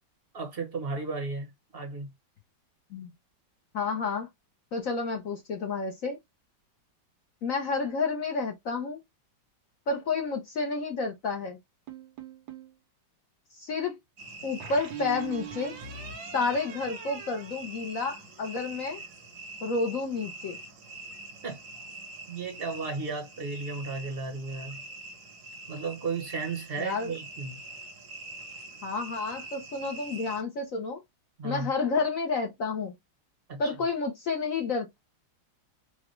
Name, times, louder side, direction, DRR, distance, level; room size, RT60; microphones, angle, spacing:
voice 1, 0.3-2.1 21.4-21.6 22.3-24.8 25.7-27.6 31.4-31.7 33.5-33.7, right 4 dB, 40° right, 0.9 m, -34 dB
voice 2, 3.7-4.3 4.7-6.2 7.4-9.0 9.9-11.6 13.6-14.0 14.4-15.7 16.3-19.0 19.6-20.6 26.8-27.1 28.8-31.0 31.4-32.9 33.6-35.0, left 4 dB, 55° left, 1.0 m, -30 dB
sound 1, 11.9-12.8 14.6-18.4, right 7 dB, 90° right, 1.7 m, -42 dB
sound 2, 14.2-30.4, right 2 dB, 75° right, 1.7 m, -45 dB
4.9 x 2.3 x 3.1 m
omnidirectional pair, 2.0 m